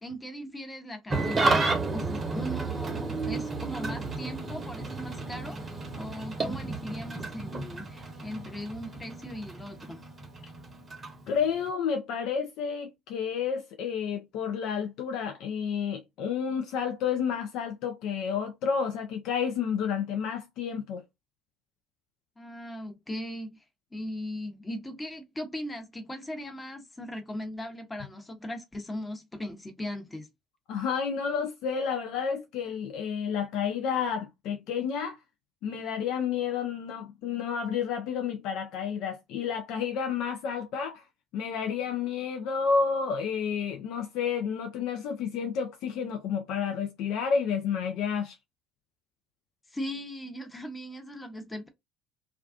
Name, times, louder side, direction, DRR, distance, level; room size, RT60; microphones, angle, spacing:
voice 1, 0.0-1.6 1.9-10.1 22.4-23.6 23.9-30.3 49.7-51.7, equal, 15° left, 0.8 m, -38 dB
Engine starting / Idling, 1.1-11.7, right 3 dB, 30° right, 0.7 m, -32 dB
voice 2, 11.3-21.0 30.7-35.2 35.6-41.0 41.3-48.4, left 6 dB, 60° left, 0.4 m, -30 dB
2.4 x 2.2 x 2.3 m
figure-of-eight pair, 55°, 0 cm